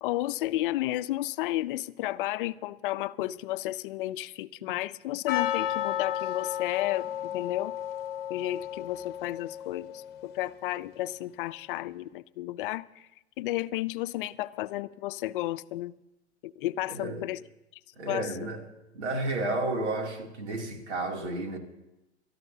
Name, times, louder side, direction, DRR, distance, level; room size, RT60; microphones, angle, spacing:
voice 1, 0.0-7.1 7.3-7.8 8.3-13.1 13.4-15.9 16.4-17.4 18.1-18.5, left 16 dB, 50° left, 0.6 m, -32 dB
Percussion, 5.3-10.2, left 11 dB, 30° left, 1.0 m, -33 dB
voice 2, 16.9-17.3 18.0-18.6 18.9-21.6, right 2 dB, 80° right, 3.0 m, -32 dB
29.0 x 13.5 x 2.8 m
hypercardioid pair, 120°, 34 cm